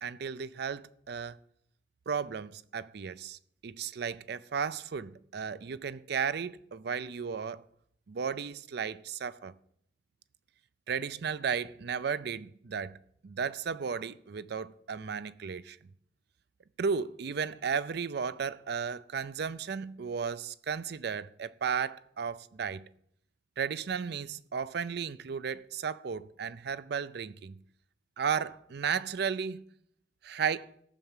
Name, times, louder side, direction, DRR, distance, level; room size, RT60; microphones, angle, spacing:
voice 1, 0.0-1.4 2.1-7.6 8.1-9.5 10.9-13.0 13.2-15.8 16.8-22.9 23.6-27.6 28.2-29.7 30.2-30.7, right 6 dB, 60° right, 0.5 m, -34 dB
14.5 x 5.9 x 7.3 m
head